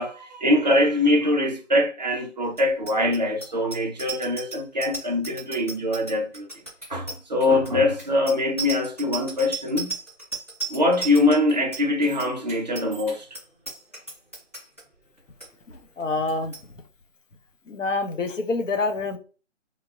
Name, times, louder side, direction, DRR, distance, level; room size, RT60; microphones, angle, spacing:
voice 1, 0.0-6.5 6.9-9.9 10.7-13.3, left 1 dB, 35° right, 0.5 m, -23 dB
Bicycle bell, 2.5-14.8 15.2-15.5 15.7-16.0 16.3-16.6, right 3 dB, 10° left, 0.7 m, -36 dB
voice 2, 16.0-16.5 17.7-19.2, left 3 dB, 85° left, 0.7 m, -26 dB
3.1 x 2.1 x 2.3 m
figure-of-eight pair, 160°, 37 cm